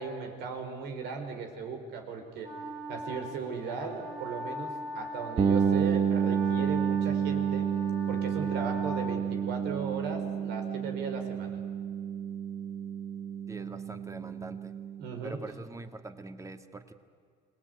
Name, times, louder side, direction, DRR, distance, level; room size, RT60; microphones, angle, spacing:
voice 1, 0.0-2.5 2.9-7.7 8.1-11.6 15.0-15.4, right 5 dB, 85° right, 5 dB, 4.8 m, -37 dB
Wind instrument woodwind instrument, 2.4-9.9, right 1 dB, 60° right, 5.3 m, -41 dB
sound 1, 5.4-15.1, right 7 dB, 35° right, 1.0 m, -30 dB
voice 2, 13.5-14.7 15.2-16.9, right 2 dB, 20° right, 8 dB, 1.9 m, -43 dB
27.0 x 20.0 x 9.6 m, 2.2 s
cardioid pair, 110°, 17 cm